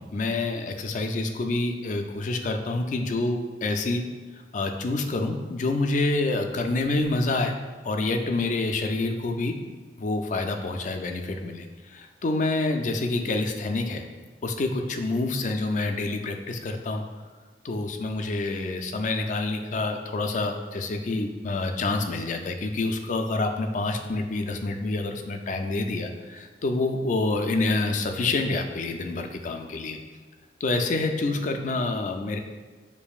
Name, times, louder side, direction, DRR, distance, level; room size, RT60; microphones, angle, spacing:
voice 1, 0.0-4.0 4.5-7.6 7.8-9.6 10.0-14.0 14.4-17.0 17.6-30.0 30.6-32.4, left 2 dB, 45° left, 5 dB, 0.3 m, -27 dB
6.9 x 2.6 x 2.3 m, 1.4 s
head